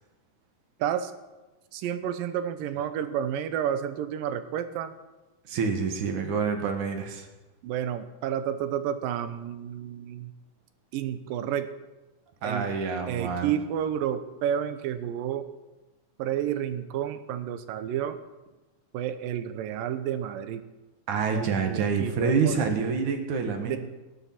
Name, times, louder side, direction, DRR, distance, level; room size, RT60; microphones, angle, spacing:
voice 1, 0.8-1.1 1.7-4.9 7.6-10.3 10.9-11.7 12.4-12.7 13.1-15.5 16.2-18.2 18.9-20.6 21.3-22.6 23.6-23.8, right 9 dB, 90° right, 10 dB, 2.6 m, -30 dB
voice 2, 5.5-7.3 12.4-13.5 21.1-23.8, right 5 dB, 65° right, 5 dB, 2.9 m, -27 dB
15.5 x 11.5 x 5.9 m, 1.1 s
omnidirectional pair, 3.9 m